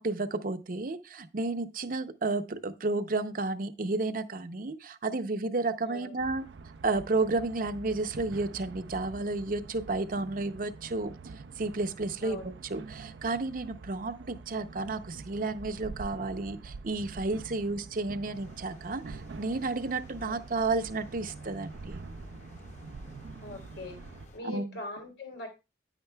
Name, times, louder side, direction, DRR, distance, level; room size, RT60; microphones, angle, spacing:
voice 1, 0.0-6.4 6.8-11.1 11.6-22.0 24.4-24.7, right 3 dB, 50° right, 0.6 m, -32 dB
sound 1, 6.2-24.3, right 4 dB, 90° right, 0.4 m, -46 dB
sound 2, 18.3-24.4, left 1 dB, 45° left, 1.1 m, -52 dB
voice 2, 23.4-24.0 24.3-25.5, left 2 dB, 90° left, 3.2 m, -41 dB
9.8 x 8.9 x 2.2 m
head